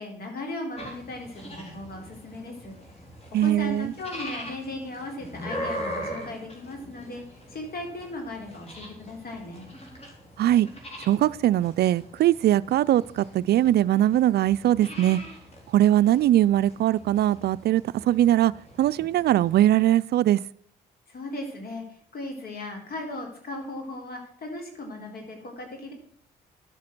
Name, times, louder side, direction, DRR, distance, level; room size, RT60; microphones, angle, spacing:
voice 1, 0.0-2.7 3.4-9.7 21.1-25.9, left 2 dB, 55° left, 4.0 m, -37 dB
sound 1, 0.8-19.8, equal, 35° left, 4.0 m, -41 dB
voice 2, 3.3-3.9 10.4-10.7 11.0-15.2 15.7-18.5 18.8-20.4, right 13 dB, 65° right, 0.4 m, -21 dB
11.5 x 7.4 x 6.1 m
supercardioid pair, 70°, 18 cm